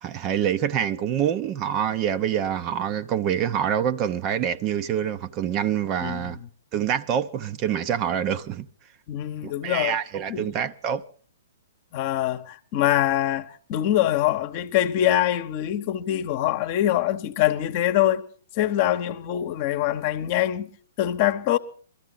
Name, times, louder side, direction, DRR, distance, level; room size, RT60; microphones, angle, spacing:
voice 1, 0.0-6.4 6.7-8.7 9.4-11.0, right 9 dB, 30° right, 0.6 m, -26 dB
voice 2, 6.0-6.3 9.1-10.0 10.3-10.5 11.9-18.2 18.6-20.7 21.0-21.6, left 12 dB, 40° left, 0.9 m, -24 dB
21.5 x 13.5 x 3.9 m
hypercardioid pair, 120°, 0 cm